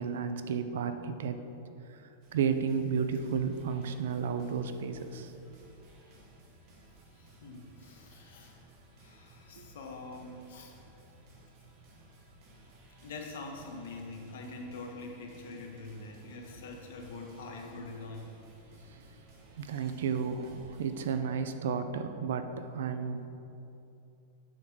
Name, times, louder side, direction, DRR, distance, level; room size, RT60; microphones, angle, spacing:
voice 1, 0.0-1.4 1.9-2.0 2.3-5.3 9.6-9.7 19.6-23.3, right 6 dB, 75° right, 9 dB, 0.5 m, -32 dB
sound 1, 2.2-21.2, right 1 dB, 35° right, 1.2 m, -57 dB
voice 2, 7.1-8.6 9.0-10.7 13.0-18.4, left 3 dB, 70° left, 2 dB, 1.1 m, -44 dB
7.7 x 3.8 x 6.1 m, 2.7 s
supercardioid pair, 180°, 0 cm